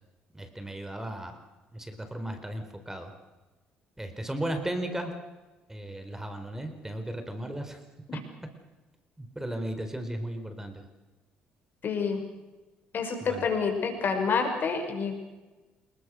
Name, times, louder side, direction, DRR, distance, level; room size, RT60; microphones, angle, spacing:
voice 1, 0.3-1.4 1.7-3.1 4.0-5.1 5.7-7.8 9.2-10.8 13.2-13.5, right 1 dB, 10° right, 7 dB, 4.3 m, -35 dB
voice 2, 11.8-12.2 12.9-15.2, left 5 dB, 50° left, 6 dB, 6.3 m, -28 dB
29.0 x 20.5 x 6.4 m, 1.2 s
hypercardioid pair, 60°, 4 cm